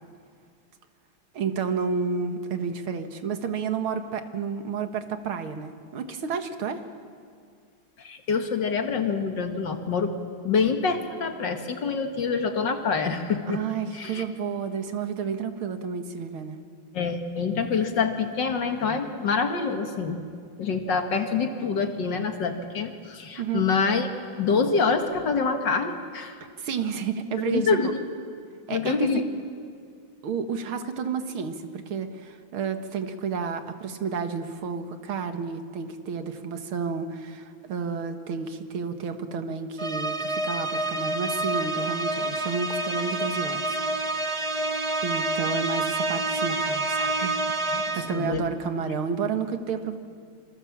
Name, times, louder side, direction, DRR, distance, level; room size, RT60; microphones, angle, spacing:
voice 1, 1.3-6.8 13.5-16.6 23.4-23.6 26.6-27.8 28.7-29.2 30.2-43.6 45.0-50.0, right 6 dB, 75° right, 7 dB, 2.4 m, -31 dB
voice 2, 8.0-10.1 10.4-13.6 13.9-14.2 16.9-20.2 20.6-24.1 24.4-26.4 27.4-27.9 28.7-29.2 47.7-48.5, left 5 dB, 60° left, 6 dB, 2.2 m, -26 dB
sound 1, 39.8-48.3, right 2 dB, 55° right, 0.3 m, -28 dB
27.5 x 26.0 x 7.4 m, 2.2 s
omnidirectional pair, 2.3 m